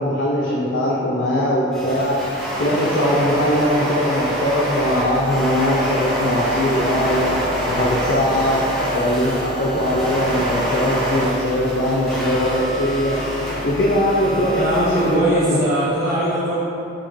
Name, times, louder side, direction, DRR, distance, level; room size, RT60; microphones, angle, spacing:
voice 1, 0.0-2.2 2.6-7.4 7.7-8.7 8.9-13.2 13.6-15.9, equal, 65° left, -5 dB, 0.4 m, -20 dB
sound 1, 1.7-15.2, right 1 dB, ahead, 0.7 m, -26 dB
voice 2, 14.3-16.6, right 1 dB, 50° right, -10 dB, 0.6 m, -22 dB
6.0 x 3.0 x 2.6 m, 2.8 s
head